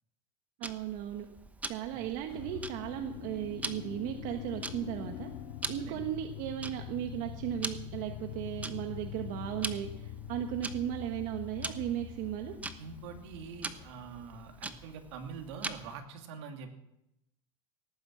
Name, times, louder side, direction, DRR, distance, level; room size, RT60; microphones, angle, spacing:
Tick-tock, 0.6-16.0, right 3 dB, 10° right, 1.1 m, -44 dB
voice 1, 0.6-1.3 1.6-5.3 5.7-12.5, right 11 dB, 65° right, 5 dB, 1.4 m, -36 dB
sound 1, 2.3-14.5, left 11 dB, 85° left, 1.4 m, -44 dB
voice 2, 12.8-16.7, right 5 dB, 85° right, 4 dB, 2.7 m, -45 dB
18.5 x 9.3 x 7.6 m, 0.85 s
supercardioid pair, 130°, 14 cm